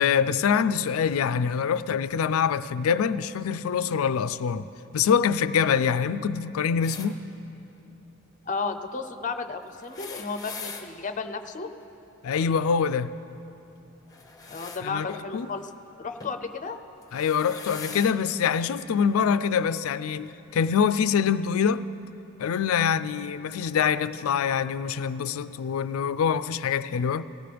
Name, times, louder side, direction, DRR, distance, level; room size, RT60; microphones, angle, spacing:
voice 1, 0.0-4.7 4.9-7.2 12.2-13.1 14.8-15.5 17.1-21.9 22.4-27.2, left 7 dB, 85° left, 0.4 m, -25 dB
sound 1, 6.8-7.1 9.7-10.9 14.1-14.8 16.2-16.4 17.0-18.1 19.2-19.3 20.5-20.6, left 4 dB, 15° left, 0.9 m, -41 dB
voice 2, 8.4-11.7 14.5-15.7 16.0-16.8, left 4 dB, 40° left, 0.6 m, -33 dB
19.0 x 15.5 x 3.4 m
head